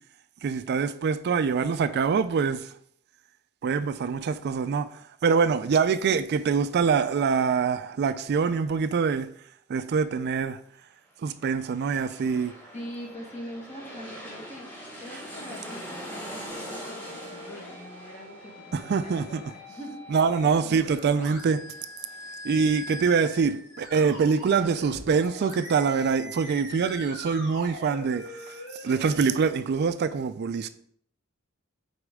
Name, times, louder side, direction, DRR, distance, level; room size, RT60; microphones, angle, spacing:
voice 1, 0.4-2.7 3.6-4.9 5.2-9.3 9.7-10.6 11.2-12.5 18.7-19.4 20.1-21.6 22.4-30.7, right 5 dB, 50° right, 0.3 m, -25 dB
sound 1, 11.3-22.6 23.0-23.1, equal, 10° left, 2.0 m, -43 dB
voice 2, 12.7-20.0, equal, 35° left, 1.6 m, -43 dB
sound 2, 16.5-29.5, left 1 dB, 60° left, 2.7 m, -43 dB
8.1 x 4.3 x 3.6 m
head